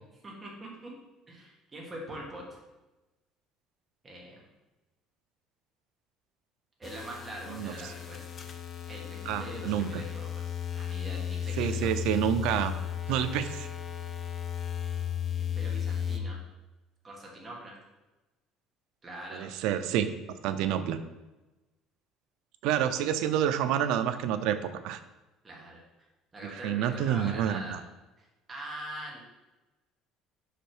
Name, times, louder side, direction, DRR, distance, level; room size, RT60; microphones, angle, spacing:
voice 1, 0.2-0.9 1.3-2.6 4.0-4.4 6.8-8.2 8.9-11.9 15.3-16.4 17.0-17.8 19.0-19.5 25.4-25.8 26.3-27.8 28.2-29.2, right 1 dB, 15° right, -3 dB, 1.5 m, -43 dB
sound 1, 6.8-16.2, left 9 dB, 25° left, 0.5 m, -35 dB
voice 2, 9.3-10.0 11.6-12.7 13.1-13.7 19.3-20.1 20.4-21.0 22.6-25.0 26.5-27.8, right 10 dB, 70° right, 10 dB, 0.5 m, -28 dB
5.4 x 5.0 x 4.5 m, 1.1 s
cardioid pair, 170°, 0 cm